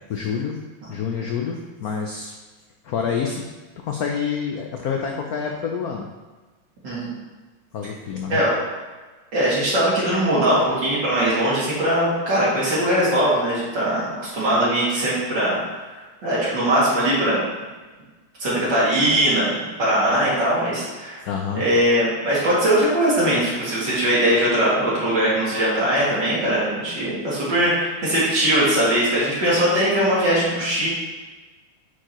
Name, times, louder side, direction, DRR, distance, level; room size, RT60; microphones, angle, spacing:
voice 1, 0.1-0.5 0.9-2.3 2.8-3.4 3.8-6.1 7.7-8.4 21.3-21.6, left 6 dB, 80° left, 2 dB, 0.8 m, -27 dB
voice 2, 9.3-15.6 16.2-17.4 18.4-21.2 21.5-30.9, right 1 dB, 60° right, -8 dB, 2.9 m, -20 dB
8.6 x 4.6 x 3.0 m, 1.3 s
omnidirectional pair, 2.3 m